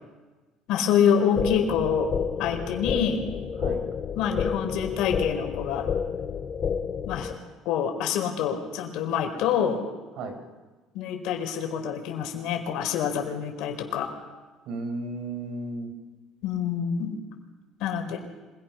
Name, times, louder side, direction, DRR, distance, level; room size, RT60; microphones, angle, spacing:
voice 1, 0.7-2.1 2.4-3.2 4.1-5.9 7.0-7.3 7.6-9.8 10.9-14.1 16.4-17.2 17.8-18.2, left 8 dB, 70° left, 3 dB, 4.7 m, -26 dB
sound 1, 1.4-7.4, left 6 dB, 35° left, 1.9 m, -30 dB
voice 2, 14.7-15.9, right 2 dB, 65° right, 7 dB, 4.7 m, -34 dB
26.0 x 22.5 x 5.9 m, 1.3 s
cardioid pair, 135°, 0 cm